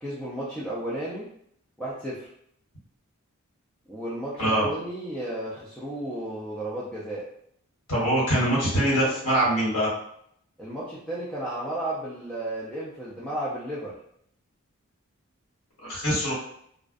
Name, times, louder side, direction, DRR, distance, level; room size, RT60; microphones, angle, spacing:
voice 1, 0.0-1.3 1.8-2.3 3.9-7.3 10.6-14.0, right 1 dB, 5° left, -8 dB, 0.3 m, -33 dB
voice 2, 7.9-9.9 15.8-16.3, right 1 dB, 85° left, -7 dB, 1.4 m, -23 dB
2.4 x 2.1 x 2.5 m, 0.69 s
head